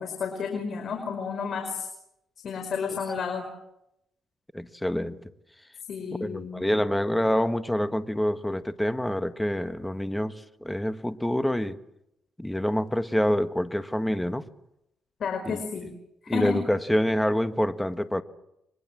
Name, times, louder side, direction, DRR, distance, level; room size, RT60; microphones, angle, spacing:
voice 1, 0.0-1.9 2.4-3.4 5.9-6.7 15.2-15.9 16.2-16.6, left 6 dB, 55° left, 5 dB, 5.2 m, -31 dB
voice 2, 4.5-5.2 6.2-11.8 12.4-14.4 15.4-15.6 16.3-18.2, equal, 5° left, 10 dB, 1.5 m, -26 dB
30.0 x 24.0 x 7.6 m, 0.83 s
cardioid pair, 90°, 0 cm